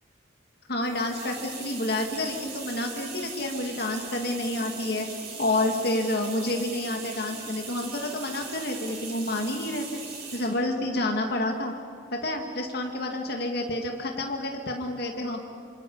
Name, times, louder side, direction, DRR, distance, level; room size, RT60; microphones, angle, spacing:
voice 1, 0.7-5.1 5.4-10.0 10.3-11.7 12.1-15.4, left 1 dB, 55° left, 2 dB, 2.1 m, -29 dB
sound 1, 0.8-10.6, right 4 dB, 60° right, 7.5 m, -40 dB
28.0 x 26.5 x 5.5 m, 2.4 s
head